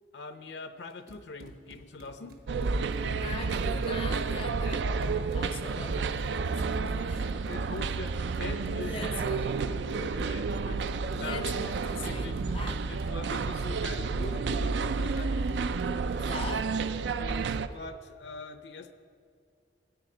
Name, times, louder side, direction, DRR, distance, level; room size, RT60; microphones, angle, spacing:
voice 1, 0.1-2.4 7.3-11.6 11.9-12.4 12.9-15.6 17.2-18.9, left 3 dB, 70° left, 9 dB, 0.7 m, -43 dB
Run, 0.9-16.7, equal, 55° right, 1.1 m, -50 dB
sound 1, 2.5-17.7, right 4 dB, 75° right, 0.4 m, -30 dB
voice 2, 3.2-7.3 8.8-9.5 11.1-12.8 16.2-16.7, left 4 dB, 30° left, 7 dB, 0.5 m, -42 dB
14.0 x 9.3 x 5.0 m, 2.2 s
head